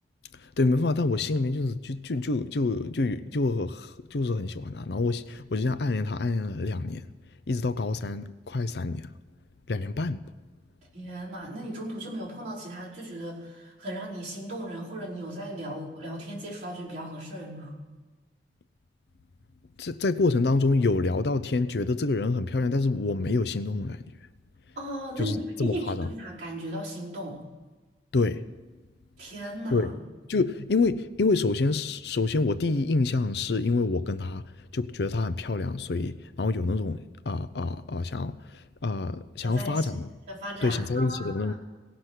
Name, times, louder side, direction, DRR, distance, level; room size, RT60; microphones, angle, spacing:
voice 1, 0.4-7.0 7.5-9.1 9.7-10.2 19.8-24.0 25.2-26.1 28.1-28.4 29.7-29.9 30.3-34.4 34.7-40.1 40.6-41.5, left 3 dB, 65° left, 0.6 m, -27 dB
voice 2, 10.9-17.8 24.7-27.4 29.2-29.9 39.4-39.9 40.3-41.6, right 1 dB, 45° right, 5.0 m, -36 dB
18.0 x 6.1 x 8.1 m
head